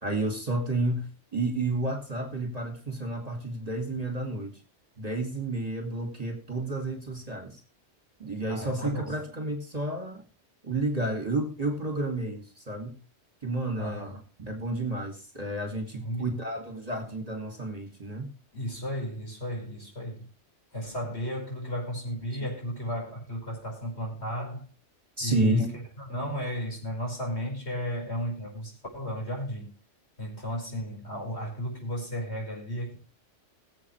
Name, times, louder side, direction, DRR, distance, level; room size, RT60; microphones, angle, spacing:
voice 1, 0.0-4.6 5.0-7.6 8.2-10.2 10.6-13.0 13.4-18.3 25.2-25.7, right 2 dB, 30° right, 2.3 m, -31 dB
voice 2, 8.5-9.1 13.8-14.2 16.0-16.4 18.5-20.3 20.7-24.7 25.2-29.7 30.2-33.0, equal, 60° left, 5.5 m, -34 dB
21.5 x 7.9 x 3.2 m
omnidirectional pair, 1.3 m